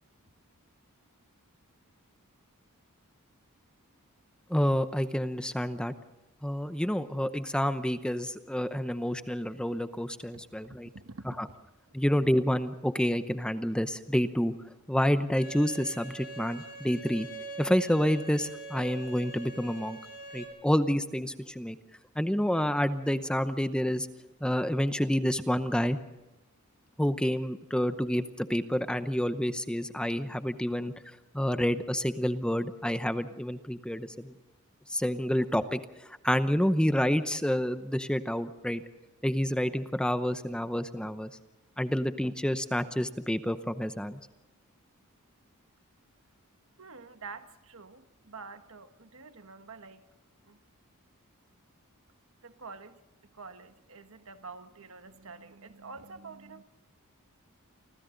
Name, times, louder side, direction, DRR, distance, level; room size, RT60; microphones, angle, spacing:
voice 1, 4.5-5.9 6.4-10.9 11.4-11.5 11.9-14.5 14.9-17.3 17.6-20.0 20.3-21.8 22.2-24.1 24.4-26.0 27.0-30.9 31.3-34.3 34.9-35.8 36.2-38.8 39.2-41.3 41.8-44.2, equal, 5° left, 10 dB, 0.8 m, -28 dB
voice 2, 10.9-11.6 46.8-50.0 50.5-50.6 52.4-53.0 53.4-56.6, right 4 dB, 65° right, 8 dB, 1.4 m, -47 dB
Bowed string instrument, 15.4-20.4, right 2 dB, 45° left, 7.1 m, -43 dB
30.0 x 25.0 x 3.9 m, 1.0 s
head